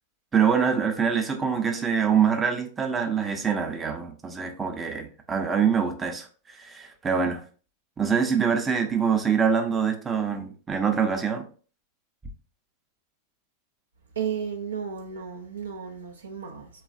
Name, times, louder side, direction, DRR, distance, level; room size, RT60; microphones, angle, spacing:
voice 1, 0.3-6.3 6.6-7.4 8.0-11.4, right 6 dB, 20° right, 0.5 m, -24 dB
voice 2, 14.2-16.7, right 7 dB, 75° right, 0.4 m, -33 dB
3.1 x 2.3 x 2.5 m
figure-of-eight pair, 95°, 0 cm